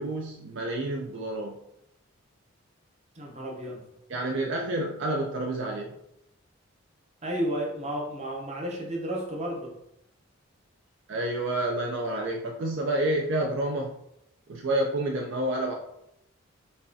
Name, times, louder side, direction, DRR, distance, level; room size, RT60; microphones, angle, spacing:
voice 1, 0.0-1.6 4.1-5.9 11.1-13.9 14.5-15.7, right 1 dB, 55° right, 1 dB, 0.4 m, -29 dB
voice 2, 3.2-3.8 7.2-9.7, equal, 30° right, -1 dB, 0.7 m, -32 dB
5.2 x 2.3 x 2.6 m, 0.79 s
head